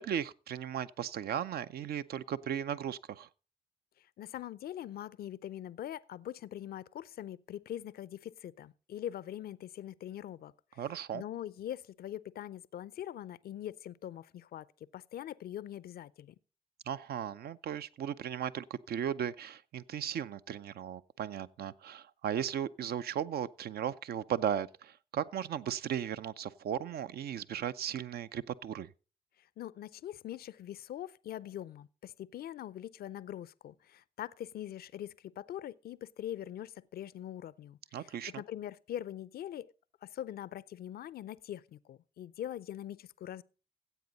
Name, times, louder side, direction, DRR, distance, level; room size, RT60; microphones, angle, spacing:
voice 1, 0.0-3.3 10.8-11.2 16.9-28.9 37.9-38.4, right 9 dB, 65° right, 0.5 m, -36 dB
voice 2, 4.0-10.9 11.1-16.3 29.4-39.7 40.0-43.4, left 11 dB, 65° left, 0.5 m, -43 dB
14.5 x 8.1 x 4.0 m
hypercardioid pair, 40°, 17 cm